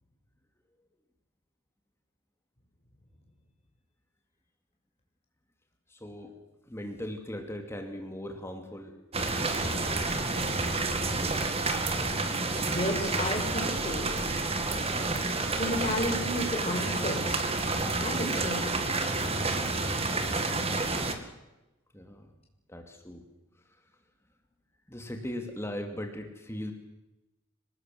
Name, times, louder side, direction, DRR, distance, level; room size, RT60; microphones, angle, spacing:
voice 1, 5.9-6.4 6.6-9.0 9.2-10.4 21.9-22.3 22.7-23.2 23.5-24.0 24.9-26.7, left 1 dB, 10° left, 4 dB, 2.6 m, -39 dB
sound 1, 9.1-21.1, right 3 dB, 30° right, 2.2 m, -29 dB
voice 2, 12.6-14.1 15.5-17.5 17.9-18.8, left 1 dB, 30° left, 0 dB, 6.0 m, -32 dB
26.0 x 19.5 x 7.8 m, 0.98 s
head